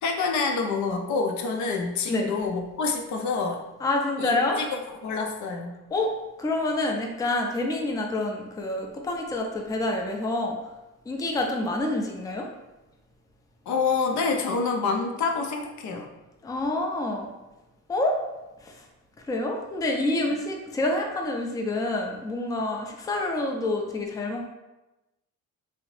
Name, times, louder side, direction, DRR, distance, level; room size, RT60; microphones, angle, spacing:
voice 1, 0.0-3.6 4.2-4.7 5.0-5.8 13.7-16.1, left 4 dB, 70° left, 2 dB, 0.5 m, -27 dB
voice 2, 3.8-4.6 5.9-6.1 6.4-10.6 11.1-12.5 16.4-17.3 17.9-18.2 18.6-18.8 19.3-24.5, left 2 dB, 10° left, 1 dB, 0.4 m, -27 dB
2.7 x 2.0 x 3.0 m, 1.0 s
cardioid pair, 90°, 30 cm